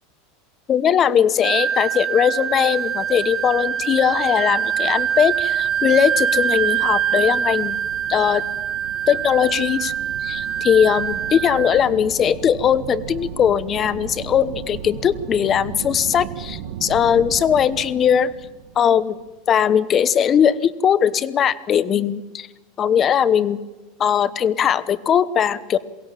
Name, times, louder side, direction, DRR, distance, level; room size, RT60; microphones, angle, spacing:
voice 1, 0.7-7.8 8.1-8.4 9.1-9.9 10.2-18.3 18.8-19.2 19.5-22.5 22.8-23.6 24.0-25.8, left 8 dB, 30° left, 16 dB, 1.0 m, -19 dB
Wind instrument woodwind instrument, 1.4-11.8, right 9 dB, 35° right, 2.1 m, -24 dB
sound 1, 2.4-19.4, right 8 dB, 75° right, 1.7 m, -37 dB
22.5 x 16.5 x 9.1 m, 1.2 s
supercardioid pair, 120°, 0 cm